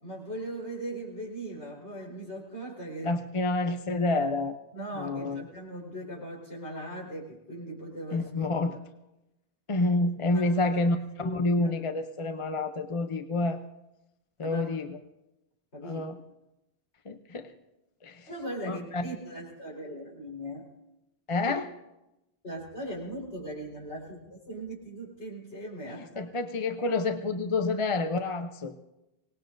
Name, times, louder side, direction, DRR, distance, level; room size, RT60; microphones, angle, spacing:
voice 1, 0.0-3.2 4.7-8.3 8.7-8.8 10.3-10.8 11.2-11.7 14.4-14.8 15.7-16.1 18.3-20.7 22.4-26.2, right 1 dB, 85° left, -3 dB, 4.6 m, -39 dB
voice 2, 3.0-4.6 5.0-5.4 8.1-8.8 9.7-13.6 14.4-15.0 15.8-16.2 17.1-17.5 18.0-18.3 18.7-19.0 21.3-21.7 25.9-28.7, left 2 dB, 35° left, 7 dB, 0.7 m, -28 dB
24.5 x 19.0 x 2.6 m, 0.94 s
omnidirectional pair, 1.1 m